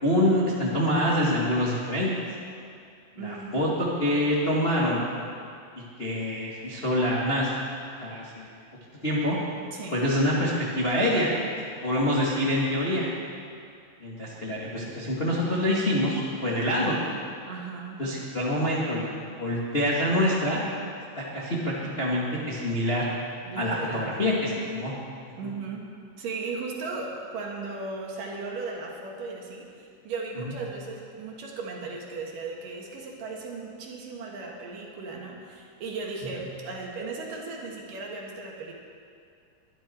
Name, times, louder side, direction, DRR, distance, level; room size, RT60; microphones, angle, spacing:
voice 1, 0.0-2.1 3.2-5.0 6.0-7.5 8.0-8.5 9.0-9.4 9.9-11.3 11.8-13.1 14.0-17.0 18.0-20.6 21.2-23.1 23.6-24.9 25.4-25.5 30.4-30.5, left 1 dB, 40° left, -6 dB, 0.8 m, -26 dB
voice 2, 3.2-3.5 9.7-10.0 17.5-18.0 23.4-24.1 25.4-25.9 26.2-38.8, right 4 dB, 60° right, -1 dB, 3.0 m, -36 dB
22.0 x 12.0 x 4.4 m, 2.3 s
omnidirectional pair, 4.7 m